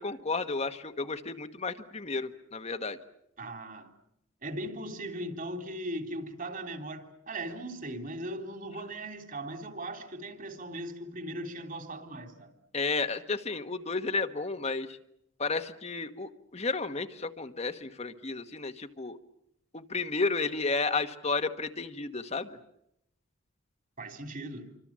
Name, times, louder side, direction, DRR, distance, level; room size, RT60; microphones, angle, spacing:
voice 1, 0.0-3.0 12.7-15.0 15.4-19.2 19.7-22.6, left 3 dB, 35° left, 1.2 m, -32 dB
voice 2, 3.4-3.9 4.4-12.5 24.0-24.7, right 1 dB, 45° right, 3.3 m, -38 dB
28.0 x 25.0 x 7.5 m
head